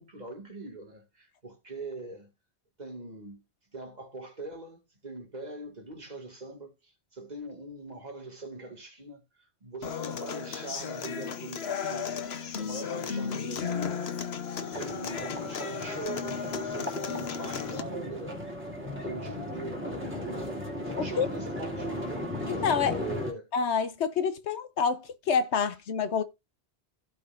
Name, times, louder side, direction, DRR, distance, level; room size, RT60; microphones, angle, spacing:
voice 1, 0.0-2.3 2.8-3.4 3.7-12.3 12.6-14.0 14.6-18.4 19.0-20.5 20.8-23.5, right 2 dB, 40° right, 2.2 m, -42 dB
Human voice / Acoustic guitar, 9.8-17.8, left 7 dB, 70° left, 1.2 m, -35 dB
sound 1, 14.7-23.3, left 1 dB, 10° right, 2.7 m, -36 dB
voice 2, 21.0-21.3 22.5-23.0 23.5-26.2, left 6 dB, 90° left, 1.2 m, -27 dB
16.0 x 5.3 x 2.5 m
omnidirectional pair, 1.1 m